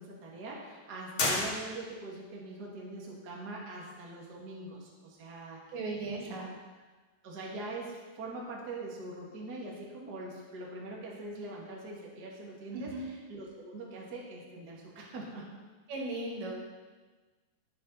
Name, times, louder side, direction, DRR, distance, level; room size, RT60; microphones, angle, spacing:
voice 1, 0.0-5.8 6.2-6.4 7.2-15.5, right 2 dB, 30° right, -3 dB, 2.2 m, -43 dB
sound 1, 1.2-2.2, left 2 dB, 40° left, 2.2 m, -32 dB
voice 2, 5.7-6.5 12.7-13.0 15.9-16.5, right 2 dB, 90° right, -2 dB, 4.5 m, -37 dB
20.5 x 7.4 x 4.3 m, 1.3 s
omnidirectional pair, 4.9 m